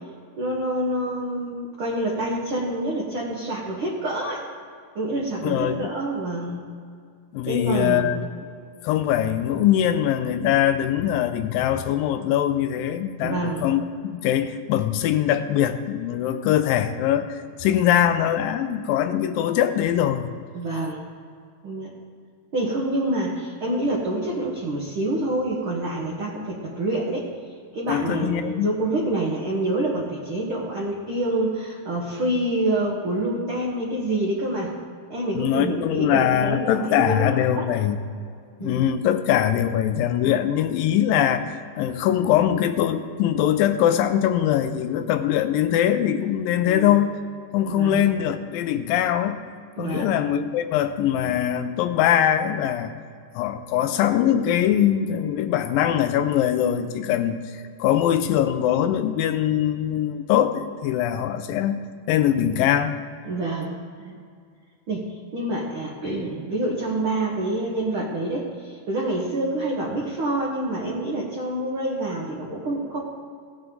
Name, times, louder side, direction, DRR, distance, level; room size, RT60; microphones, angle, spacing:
voice 1, 0.4-4.5 4.9-6.6 7.5-8.1 13.2-13.6 20.5-21.0 21.6-21.9 22.5-27.3 27.7-34.8 35.1-37.7 38.6-38.8 46.6-47.0 47.7-48.0 49.8-50.2 63.2-63.7 64.0-64.1 64.9-65.0 65.3-73.0, right 1 dB, 55° right, -4 dB, 1.6 m, -27 dB
voice 2, 5.4-5.8 7.3-8.3 8.8-20.3 27.9-28.7 35.3-38.0 38.6-47.1 47.5-49.4 49.8-52.9 53.4-61.8 62.1-63.0, left 10 dB, 85° left, 10 dB, 2.3 m, -22 dB
17.0 x 7.8 x 3.9 m, 2.2 s
omnidirectional pair, 4.1 m